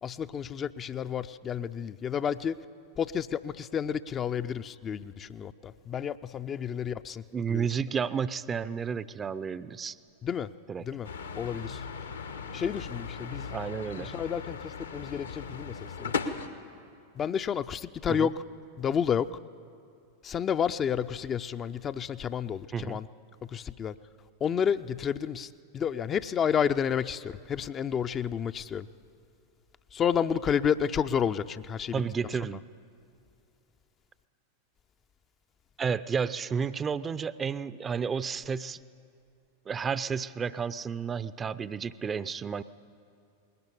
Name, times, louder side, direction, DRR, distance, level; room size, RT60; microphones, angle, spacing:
voice 1, 0.0-2.6 3.0-7.2 7.5-7.7 10.2-10.5 10.8-11.1 11.4-11.8 12.5-13.5 14.0-16.1 17.2-18.3 18.8-19.3 20.2-23.1 23.5-23.9 24.4-25.5 25.7-28.9 29.9-32.0, left 8 dB, 25° left, 10 dB, 0.5 m, -30 dB
voice 2, 7.3-10.0 10.7-10.8 13.5-14.1 18.1-18.3 22.7-23.0 31.9-32.6 35.8-38.8 39.7-42.6, right 6 dB, 20° right, 14 dB, 0.6 m, -31 dB
sound 1, 11.0-16.5, left 5 dB, 70° left, 1.3 m, -37 dB
20.0 x 19.0 x 9.9 m, 2.5 s
figure-of-eight pair, 90°, 0 cm